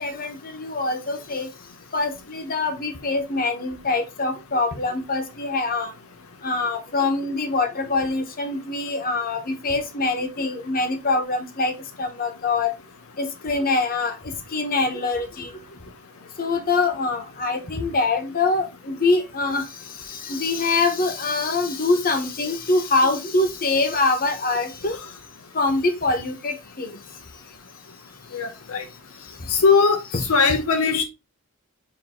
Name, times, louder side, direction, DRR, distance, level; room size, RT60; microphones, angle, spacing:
voice 1, 0.0-1.5 1.9-5.9 6.4-12.7 13.2-15.5 16.4-19.6 20.1-25.0 25.5-27.0, left 3 dB, 40° left, 1.2 m, -24 dB
voice 2, 28.3-28.8 29.5-31.0, left 5 dB, 70° left, 0.8 m, -20 dB
7.3 x 2.9 x 4.3 m
head